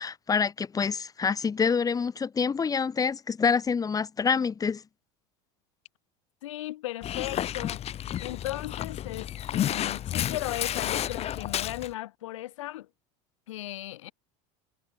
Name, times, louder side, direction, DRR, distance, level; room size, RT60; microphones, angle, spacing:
voice 1, 0.0-4.8, left 5 dB, 25° left, 5.0 m, -26 dB
voice 2, 6.4-7.8 8.2-12.9 13.5-14.1, left 15 dB, 90° left, 4.7 m, -36 dB
Dog, 7.0-11.9, left 11 dB, 40° left, 6.5 m, -31 dB
supercardioid pair, 110°, 16 cm